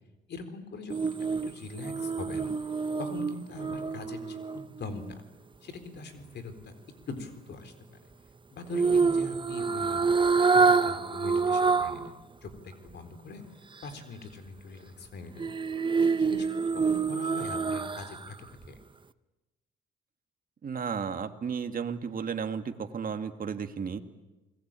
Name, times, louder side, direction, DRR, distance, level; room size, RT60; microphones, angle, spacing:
voice 1, 0.3-2.7 3.0-5.0 5.6-6.7 7.1-8.0 8.5-13.4 13.8-15.5 16.0-18.3 18.7-18.8, left 3 dB, 60° left, 9 dB, 4.0 m, -42 dB
sound 1, 0.9-5.1 8.7-12.1 12.5-12.6 15.4-18.3 18.6-18.8, right 4 dB, 25° right, 1.0 m, -27 dB
voice 2, 20.6-24.0, right 6 dB, 45° right, 7 dB, 2.2 m, -33 dB
28.5 x 20.5 x 9.0 m, 1.1 s
cardioid pair, 90°, 20 cm